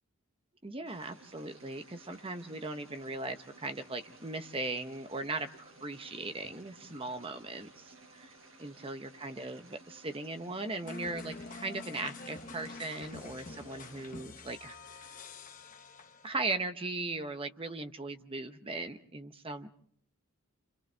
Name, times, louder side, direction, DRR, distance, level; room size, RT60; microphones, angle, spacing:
voice 1, 0.6-8.3 8.6-15.1 16.2-19.7, right 3 dB, 25° right, 8 dB, 1.0 m, -38 dB
sound 1, 0.8-14.1, right 2 dB, 75° right, 6.5 m, -57 dB
sound 2, 10.9-16.5, left 3 dB, 40° left, 0.9 m, -47 dB
28.0 x 27.5 x 3.4 m, 0.64 s
head